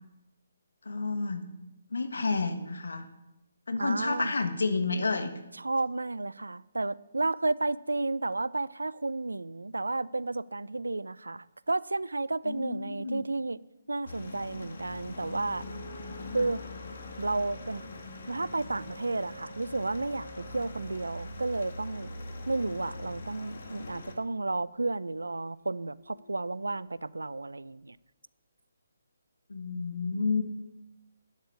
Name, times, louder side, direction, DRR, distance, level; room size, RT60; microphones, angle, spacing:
voice 1, 0.8-1.5 1.9-3.1 3.7-5.3 12.4-13.3 16.2-16.5 29.5-30.4, left 4 dB, 75° left, 9 dB, 1.4 m, -30 dB
voice 2, 3.8-4.3 5.6-13.6 13.9-15.6 16.3-16.6 17.2-17.8 18.3-22.1 22.5-28.0, right 2 dB, 80° right, 20 dB, 0.4 m, -32 dB
sound 1, 14.0-24.1, left 2 dB, 55° left, 1.9 m, -43 dB
sound 2, 14.9-27.7, right 2 dB, 5° right, 4.0 m, -54 dB
9.6 x 7.4 x 8.2 m, 0.95 s
figure-of-eight pair, 145°, 0 cm